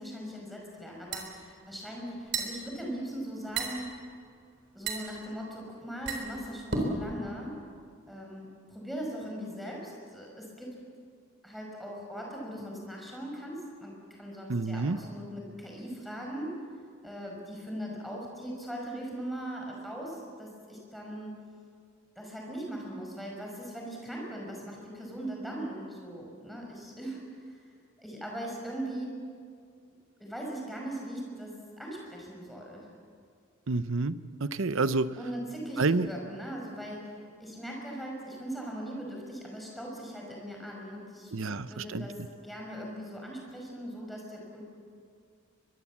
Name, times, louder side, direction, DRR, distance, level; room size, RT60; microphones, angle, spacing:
voice 1, 0.0-4.0 4.7-7.5 8.1-10.8 11.4-16.6 17.0-21.4 22.2-27.7 28.0-29.2 30.2-32.9 35.2-44.6, right 1 dB, ahead, -1 dB, 5.3 m, -40 dB
sound 1, 0.7-7.1, right 3 dB, 55° right, 4.1 m, -35 dB
voice 2, 14.5-15.0 33.7-34.2 34.4-35.2 35.8-36.1 41.3-42.1, right 3 dB, 70° right, 13 dB, 0.8 m, -28 dB
23.5 x 22.5 x 7.3 m, 2.2 s
head